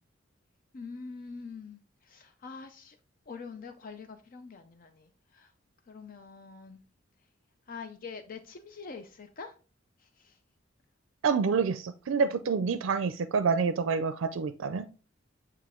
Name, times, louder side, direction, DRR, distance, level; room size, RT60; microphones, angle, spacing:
voice 1, 0.7-1.8 2.1-3.0 3.3-5.1 5.3-5.5 5.9-6.8 7.7-9.5 10.2-10.3, left 4 dB, 45° left, 0.5 m, -44 dB
voice 2, 11.2-14.9, right 5 dB, 90° right, 0.4 m, -27 dB
8.8 x 3.3 x 3.6 m
head